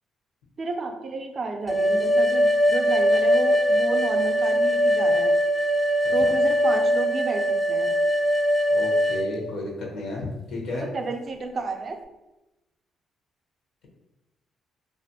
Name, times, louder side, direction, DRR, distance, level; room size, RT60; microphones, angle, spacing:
voice 1, 0.6-5.3 6.1-7.9 10.7-12.0, right 3 dB, 45° right, 5 dB, 0.4 m, -31 dB
sound 1, 1.7-9.3, equal, 15° left, 0.5 m, -21 dB
voice 2, 8.7-10.9, left 2 dB, 75° left, -1 dB, 0.7 m, -33 dB
2.4 x 2.4 x 2.6 m, 0.98 s
cardioid pair, 90°, 0 cm